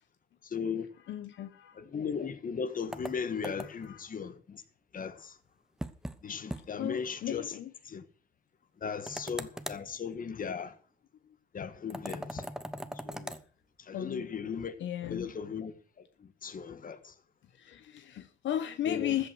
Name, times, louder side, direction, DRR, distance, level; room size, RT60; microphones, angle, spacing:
voice 1, 0.5-0.9 1.8-4.6 4.9-5.3 6.2-7.5 7.9-8.0 8.8-10.7 11.5-12.5 13.0-13.3 13.9-14.7 15.1-15.7 16.2-17.1 18.9-19.2, left 6 dB, 45° left, 1.6 m, -37 dB
voice 2, 1.1-1.8 3.6-4.1 6.8-7.7 13.9-14.3 14.8-15.3 17.6-19.3, left 11 dB, 70° left, 1.0 m, -36 dB
sound 1, 2.9-3.9 5.8-6.2 6.5-6.6 7.0-7.1 9.1-9.8 11.9-13.4, right 1 dB, 5° right, 1.1 m, -40 dB
14.5 x 8.0 x 6.2 m
cardioid pair, 90°, 20 cm